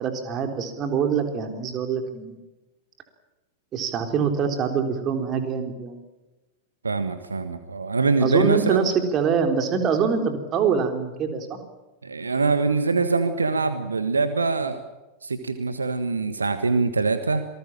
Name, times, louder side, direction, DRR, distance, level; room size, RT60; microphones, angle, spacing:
voice 1, 0.0-2.4 3.7-6.0 8.2-11.6, right 6 dB, 30° right, 5 dB, 4.0 m, -24 dB
voice 2, 6.8-8.8 12.0-14.8 15.2-17.5, right 4 dB, 75° right, 10 dB, 1.5 m, -23 dB
27.0 x 19.5 x 7.5 m, 1.1 s
figure-of-eight pair, 90°, 0 cm